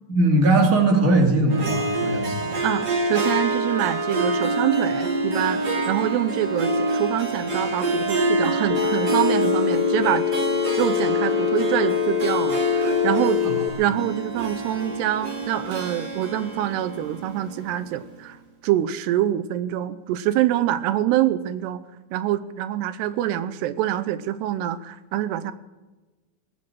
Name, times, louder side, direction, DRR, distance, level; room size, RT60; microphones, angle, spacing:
voice 1, 0.1-2.6 13.4-13.5, right 2 dB, 25° right, 1 dB, 2.4 m, -20 dB
Harp, 1.5-18.0, right 2 dB, 40° right, 1.6 m, -26 dB
voice 2, 2.6-10.2 10.8-13.4 13.8-18.4 18.6-21.8 22.1-25.5, right 12 dB, 90° right, 13 dB, 2.8 m, -25 dB
Telephone, 8.7-13.7, left 13 dB, 80° left, 2.0 m, -24 dB
18.5 x 8.6 x 7.9 m, 1.2 s
omnidirectional pair, 4.8 m